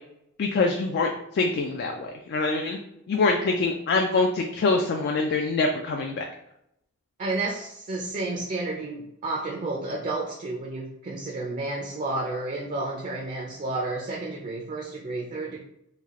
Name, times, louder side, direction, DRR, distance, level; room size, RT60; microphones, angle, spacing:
voice 1, 0.4-2.8 3.1-6.2, left 3 dB, 50° left, 3 dB, 0.3 m, -25 dB
voice 2, 7.2-15.6, right 2 dB, 35° right, -1 dB, 0.4 m, -31 dB
3.2 x 2.4 x 3.5 m, 0.80 s
head